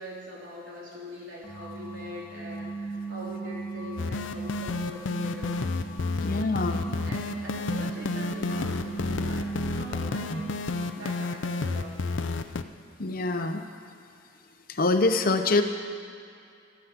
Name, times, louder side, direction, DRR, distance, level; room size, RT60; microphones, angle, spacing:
voice 1, 0.0-5.7 6.1-10.6 11.0-12.0, equal, 75° right, -5 dB, 3.6 m, -42 dB
sound 1, 1.4-11.1, right 4 dB, 15° left, 1.8 m, -38 dB
sound 2, 4.0-12.6, left 3 dB, 85° left, 0.5 m, -31 dB
voice 2, 6.2-6.8 10.3-10.4 13.0-13.6 14.7-15.6, left 2 dB, 50° left, 7 dB, 0.8 m, -25 dB
12.0 x 9.4 x 8.0 m, 2.3 s
head